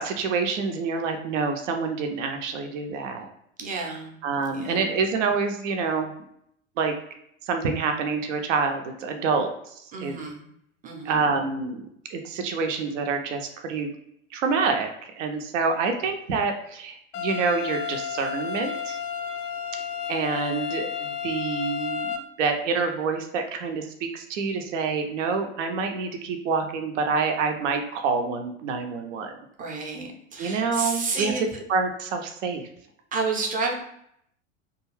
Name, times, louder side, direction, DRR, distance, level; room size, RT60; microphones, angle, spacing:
voice 1, 0.0-3.3 4.2-6.1 6.8-7.0 7.5-9.7 10.0-10.1 11.0-11.8 12.1-13.9 14.3-19.0 20.1-29.3 30.4-31.3 31.7-32.6, right 4 dB, 65° right, 5 dB, 0.5 m, -27 dB
voice 2, 3.6-4.2 4.5-4.8 9.9-10.4 10.8-11.3 29.6-31.4 33.1-33.7, right 4 dB, 20° right, 1 dB, 0.5 m, -30 dB
sound 1, 17.1-22.2, left 7 dB, 70° left, 0.5 m, -32 dB
2.4 x 2.3 x 3.1 m, 0.72 s
figure-of-eight pair, 80°, 39 cm